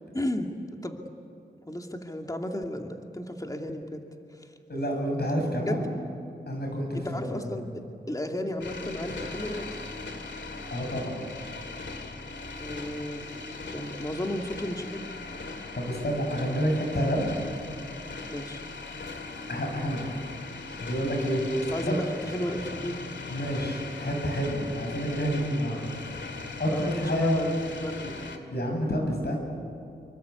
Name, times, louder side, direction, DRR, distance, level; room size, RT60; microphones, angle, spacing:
voice 1, 0.1-1.0 1.7-4.0 5.7-5.8 6.9-9.9 12.6-13.2 13.7-15.1 18.3-18.6 21.7-23.0 23.2-23.3 26.7-28.1, left 1 dB, 20° left, 3 dB, 2.5 m, -34 dB
voice 2, 4.7-5.8 6.5-7.6 10.7-11.3 15.7-17.3 19.5-20.0 20.8-21.4 23.3-25.8 26.6-27.4 28.5-29.4, equal, 65° left, 1 dB, 7.3 m, -28 dB
sound 1, 8.6-28.4, left 3 dB, 80° left, 2.3 m, -39 dB
26.5 x 23.5 x 8.3 m, 2.5 s
cardioid pair, 45°, 18 cm